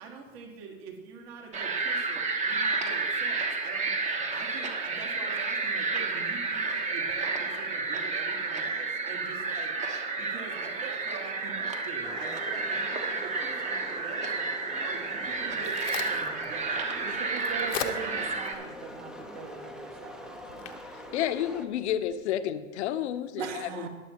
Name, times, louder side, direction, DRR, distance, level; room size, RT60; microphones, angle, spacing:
voice 1, 0.0-9.9 10.3-18.3, right 5 dB, 50° right, 0 dB, 2.2 m, -45 dB
sound 1, 1.5-18.5, right 3 dB, 20° right, 1.0 m, -31 dB
sound 2, 12.0-21.7, equal, ahead, 0.6 m, -44 dB
Crack, 15.2-22.1, left 8 dB, 85° left, 1.1 m, -42 dB
voice 2, 17.0-20.8 23.4-23.9, right 6 dB, 70° right, 5 dB, 1.7 m, -40 dB
voice 3, 21.1-23.9, left 11 dB, 65° left, 11 dB, 0.9 m, -30 dB
20.0 x 7.3 x 2.9 m, 1.4 s
hypercardioid pair, 125°, 38 cm